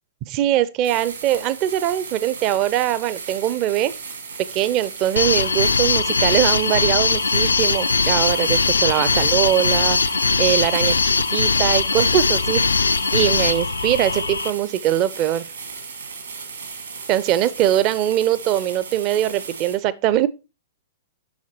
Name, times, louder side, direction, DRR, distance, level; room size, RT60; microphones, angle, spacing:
voice 1, 0.3-3.9 4.5-10.0 10.4-15.4 17.1-20.3, right 12 dB, 35° right, 0.4 m, -22 dB
sound 1, 0.8-19.8, right 5 dB, 70° right, 1.9 m, -36 dB
sound 2, 5.2-14.5, left 4 dB, 75° left, 0.3 m, -20 dB
7.2 x 5.8 x 3.0 m
figure-of-eight pair, 105°, 0 cm